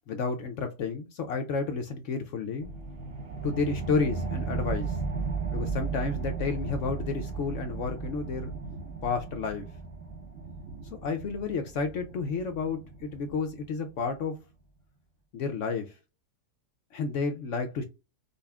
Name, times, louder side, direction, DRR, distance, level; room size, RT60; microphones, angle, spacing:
voice 1, 0.1-2.7 3.4-5.0 5.5-8.5 9.0-9.6 11.0-14.4 15.3-15.9 16.9-17.8, left 4 dB, 65° left, 0.8 m, -31 dB
sound 1, 2.6-13.7, right 4 dB, 45° right, 1.0 m, -35 dB
sound 2, 6.6-13.4, right 2 dB, 85° right, 1.9 m, -50 dB
5.2 x 2.4 x 2.2 m
omnidirectional pair, 1.7 m